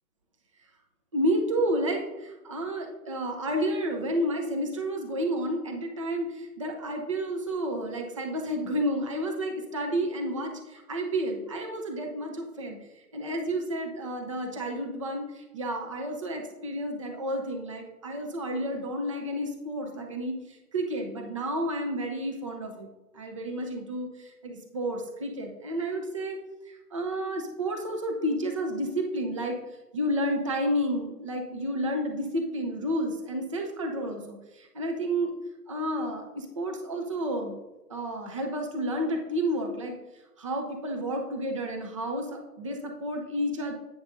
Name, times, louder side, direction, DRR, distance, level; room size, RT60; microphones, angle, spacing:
voice 1, 1.1-26.4 26.6-29.6 29.9-35.3 35.7-37.6 37.9-40.0 40.4-43.7, right 1 dB, 20° right, 3 dB, 0.5 m, -31 dB
9.8 x 8.6 x 2.6 m, 1.1 s
figure-of-eight pair, 135°, 49 cm